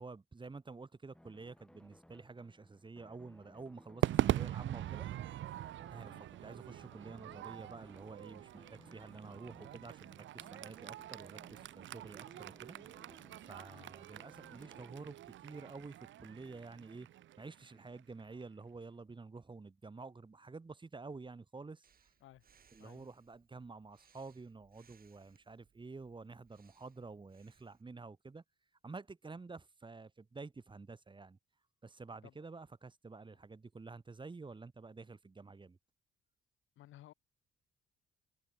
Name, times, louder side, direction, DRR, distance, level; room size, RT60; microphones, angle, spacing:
voice 1, 0.0-5.1 5.9-12.8 13.4-17.1 17.4-22.1 22.7-28.4 28.8-31.4 31.8-35.8, right 3 dB, 25° right, 2.3 m, -50 dB
sound 1, 1.1-14.9, left 1 dB, 5° left, 2.6 m, -63 dB
Crowd / Fireworks, 4.0-18.4, right 13 dB, 70° right, 1.0 m, -41 dB
voice 2, 5.9-6.2 13.7-13.9 22.2-22.5 22.8-23.1 32.2-32.4 36.8-37.1, left 14 dB, 80° left, 2.1 m, -58 dB
Breathing, 21.8-27.8, right 7 dB, 50° right, 4.5 m, -71 dB
cardioid pair, 90°, 20 cm